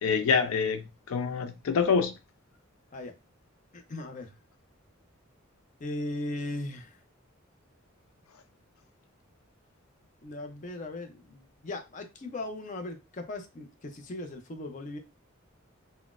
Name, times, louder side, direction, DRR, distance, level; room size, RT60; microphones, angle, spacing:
voice 1, 0.0-2.1, left 5 dB, 90° left, 0.4 m, -26 dB
voice 2, 3.7-4.4 5.8-7.0 10.2-15.0, left 2 dB, 40° left, 0.5 m, -38 dB
3.9 x 2.1 x 2.4 m
head